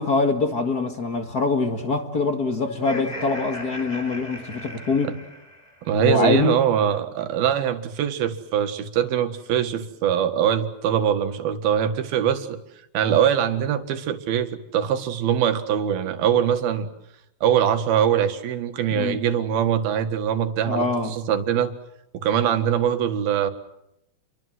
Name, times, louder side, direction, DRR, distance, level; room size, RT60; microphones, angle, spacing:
voice 1, 0.0-5.1 6.0-6.6 18.9-19.2 20.7-21.1, left 3 dB, 35° left, 1.6 m, -24 dB
Laughter, 2.7-5.9, left 1 dB, 10° left, 2.8 m, -38 dB
voice 2, 5.8-12.6 12.9-16.9 17.4-21.7 22.1-23.5, right 9 dB, 85° right, 3.6 m, -22 dB
29.5 x 24.0 x 7.8 m
omnidirectional pair, 4.2 m